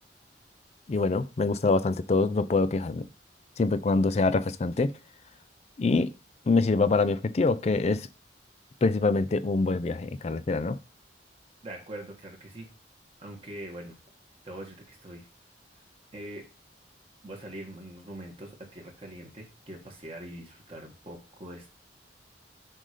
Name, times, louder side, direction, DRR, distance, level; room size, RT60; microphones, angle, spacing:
voice 1, 0.9-3.1 3.6-4.9 5.8-6.1 6.5-8.1 8.8-10.8, left 3 dB, 35° left, 0.4 m, -25 dB
voice 2, 11.6-12.7 13.2-14.0 14.4-15.3 16.1-16.4 17.2-21.7, right 1 dB, 30° right, 1.4 m, -42 dB
7.4 x 2.7 x 4.9 m
head